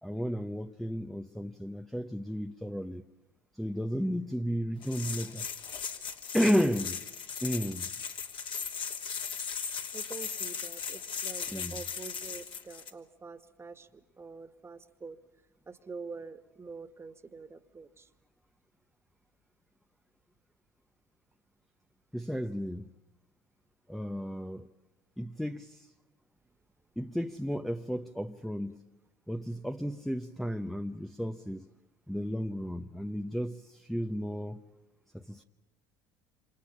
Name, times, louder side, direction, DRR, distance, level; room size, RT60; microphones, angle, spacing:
voice 1, 0.0-3.0 3.5-5.5 6.3-7.0 7.4-7.9 11.5-11.8 22.1-22.9 23.9-24.7 25.2-25.9 27.0-28.8 29.3-31.7 32.1-34.6 35.1-35.4, equal, ahead, 0.9 m, -33 dB
sound 1, 4.8-12.9, left 6 dB, 50° left, 3.0 m, -38 dB
voice 2, 9.9-15.2 15.7-18.1, right 4 dB, 25° right, 1.9 m, -46 dB
29.0 x 26.5 x 5.7 m
supercardioid pair, 80°, 11 cm